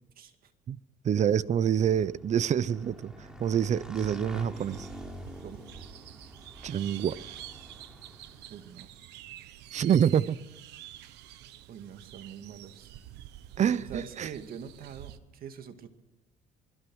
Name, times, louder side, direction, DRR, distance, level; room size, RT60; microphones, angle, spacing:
voice 1, 0.2-0.5 5.4-5.7 8.5-8.9 11.7-12.9 13.8-15.9, right 7 dB, 60° right, 2.2 m, -44 dB
voice 2, 1.0-4.9 6.6-7.2 9.7-10.4 13.6-14.3, right 9 dB, 45° right, 0.8 m, -26 dB
Motorcycle / Engine, 1.4-8.7, equal, 5° right, 3.5 m, -46 dB
sound 1, 4.5-15.2, right 13 dB, 85° right, 1.1 m, -48 dB
27.0 x 21.0 x 6.3 m
cardioid pair, 110°, 17 cm